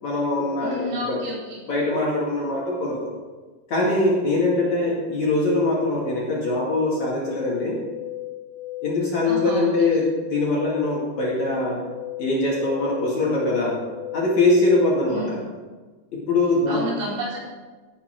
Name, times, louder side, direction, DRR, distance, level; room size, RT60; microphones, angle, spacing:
voice 1, 0.0-1.2 1.6-3.1 3.7-7.8 8.8-11.8 12.2-13.8 14.1-15.4 16.1-16.8, left 2 dB, 50° left, -4 dB, 3.1 m, -22 dB
voice 2, 0.6-1.6 9.3-9.7 15.1-15.3 16.7-17.4, right 1 dB, 65° right, -6 dB, 6.5 m, -30 dB
sound 1, 6.7-15.1, left 16 dB, 75° left, 2.4 m, -35 dB
16.5 x 8.8 x 4.7 m, 1.3 s
omnidirectional pair, 4.7 m